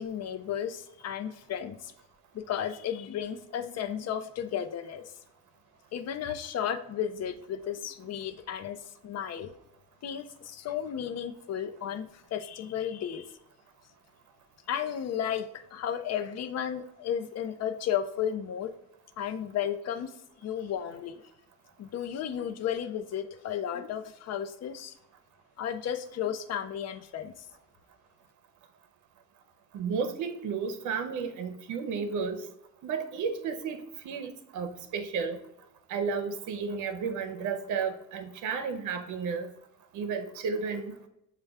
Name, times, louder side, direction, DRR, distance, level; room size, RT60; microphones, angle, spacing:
voice 1, 0.0-1.9 2.3-5.0 5.9-8.8 9.0-9.5 10.0-13.3 14.7-18.7 19.2-20.1 20.4-21.2 21.8-24.9 25.6-27.3, left 9 dB, 60° left, 10 dB, 0.5 m, -33 dB
voice 2, 29.7-32.4 32.8-35.4 35.9-39.5 39.9-40.9, right 5 dB, 80° right, 9 dB, 0.6 m, -33 dB
6.4 x 2.2 x 3.4 m, 0.83 s
cardioid pair, 90°, 30 cm